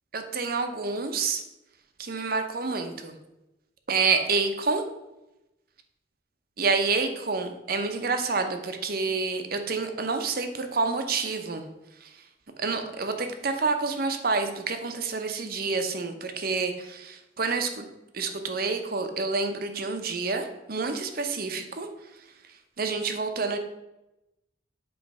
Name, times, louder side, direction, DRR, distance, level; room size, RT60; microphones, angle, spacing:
voice 1, 0.1-1.4 2.0-3.2 3.9-4.8 6.6-11.6 12.6-17.9 18.1-21.9 22.8-23.6, right 4 dB, 50° right, 6 dB, 0.7 m, -28 dB
7.8 x 3.2 x 5.4 m, 0.94 s
head